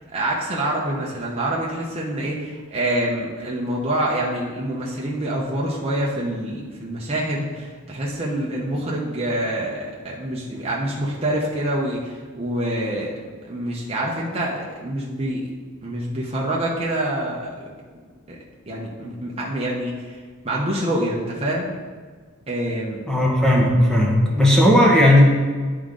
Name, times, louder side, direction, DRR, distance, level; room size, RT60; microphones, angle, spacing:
voice 1, 0.1-13.1 13.5-15.4 15.8-17.5 18.3-18.4 18.7-20.2 20.4-21.7 22.5-23.0, right 1 dB, 30° right, -4 dB, 0.8 m, -26 dB
voice 2, 23.1-25.2, left 1 dB, 5° left, -3 dB, 1.3 m, -15 dB
10.5 x 3.7 x 3.8 m, 1.5 s
head